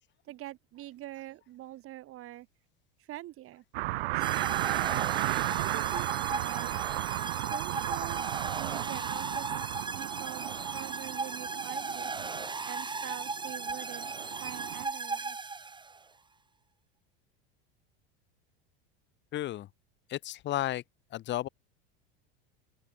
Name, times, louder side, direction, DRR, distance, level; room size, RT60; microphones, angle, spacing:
voice 1, 0.3-2.5 3.1-3.6 4.1-5.1 5.5-6.8 7.3-8.2 8.6-12.2 12.6-15.5, right 15 dB, 50° right, 4.2 m, -45 dB
sound 1, 3.7-14.8, right 20 dB, 80° right, 0.7 m, -34 dB
sound 2, 4.2-16.0, right 4 dB, 15° right, 4.3 m, -37 dB
voice 2, 19.3-19.7 20.1-20.8 21.1-21.5, left 14 dB, 40° left, 1.0 m, -33 dB
open air
supercardioid pair, 105°, 29 cm